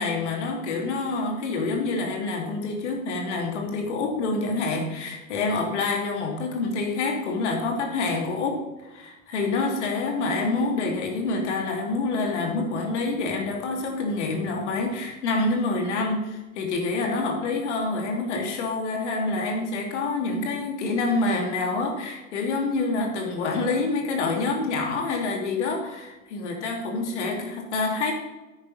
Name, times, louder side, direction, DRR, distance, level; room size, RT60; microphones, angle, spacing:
voice 1, 0.0-8.6 8.9-28.1, left 3 dB, 60° left, 2 dB, 2.9 m, -27 dB
9.9 x 9.3 x 5.6 m, 1.1 s
figure-of-eight pair, 90°, 40 cm